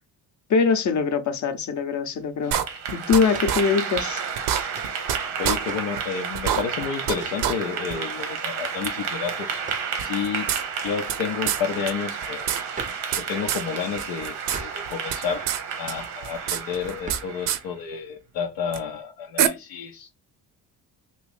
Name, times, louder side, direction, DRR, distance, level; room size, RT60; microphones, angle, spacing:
voice 1, 0.5-2.6 2.9-4.2, left 5 dB, 45° left, 0.7 m, -22 dB
Clapping / Applause, 2.4-17.7, right 6 dB, 85° right, 0.9 m, -32 dB
sound 1, 2.5-3.2 3.5-3.6 4.0-4.1 4.4-5.2 5.4-5.6 6.0-6.1 6.3-7.2 7.4-7.5 7.9-8.0 8.8-8.9 10.0-11.2 11.5-11.6 11.9-12.0 12.2-13.2 13.5-13.6 14.0-14.6 14.9-15.6 15.9-17.2 17.5-17.6 18.7-18.8 19.4-19.5, right 10 dB, 65° right, 0.6 m, -25 dB
sound 2, 3.3-3.6 4.7-5.0 5.7-6.0 7.2-7.5 9.6-10.0 12.7-13.1 14.5-14.9 17.0-17.4, right 3 dB, 20° right, 0.4 m, -39 dB
voice 2, 5.4-9.6 10.0-10.5 10.8-12.6 13.1-15.5 15.8-20.1, left 7 dB, 80° left, 0.5 m, -30 dB
2.9 x 2.6 x 3.3 m
supercardioid pair, 55°, 43 cm